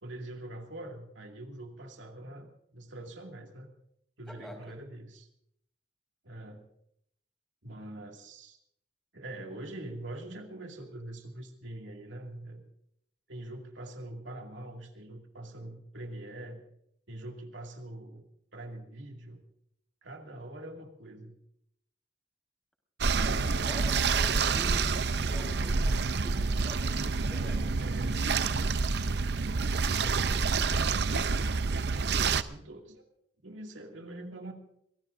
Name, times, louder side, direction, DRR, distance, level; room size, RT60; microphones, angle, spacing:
voice 1, 0.0-3.7 4.2-5.3 6.2-6.7 7.6-8.6 9.1-12.6 13.3-16.6 17.1-18.2 18.5-19.4 20.0-21.4 27.8-28.4 29.8-31.5 31.9-33.0 33.4-34.5, right 1 dB, 85° right, 2 dB, 2.3 m, -44 dB
sound 1, 23.0-32.4, right 4 dB, 60° right, 0.6 m, -28 dB
voice 2, 23.1-28.6, equal, ahead, 2 dB, 4.3 m, -45 dB
25.0 x 17.5 x 2.6 m, 0.73 s
head